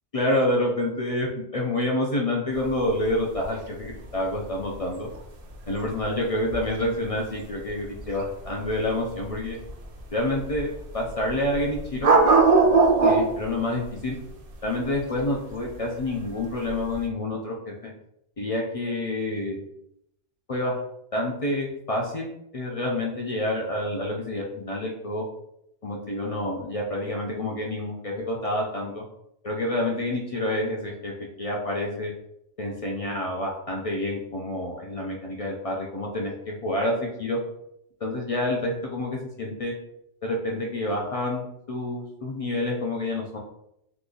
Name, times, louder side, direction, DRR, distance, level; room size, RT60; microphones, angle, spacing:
voice 1, 0.1-5.1 5.7-9.6 10.1-10.7 10.9-12.1 13.0-14.2 14.6-17.7 18.4-19.6 20.5-20.8 21.1-25.2 25.8-29.0 29.4-31.1 31.4-32.1 32.6-37.4 38.0-39.7 40.2-43.4, left 1 dB, 50° left, -1 dB, 0.4 m, -28 dB
sound 1, 2.5-17.1, right 4 dB, 45° right, 0.5 m, -24 dB
2.9 x 2.5 x 3.7 m, 0.78 s
omnidirectional pair, 1.2 m